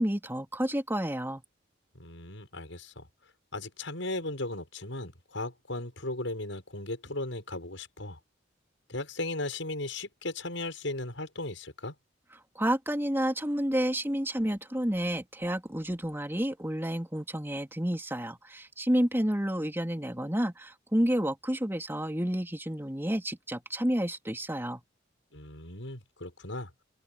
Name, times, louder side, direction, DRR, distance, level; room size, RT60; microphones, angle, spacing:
voice 1, 0.0-1.4 12.6-24.8, equal, 10° right, 3.8 m, -30 dB
voice 2, 2.0-3.1 3.5-8.2 8.9-11.9 25.3-26.7, left 2 dB, 75° left, 7.1 m, -36 dB
open air
head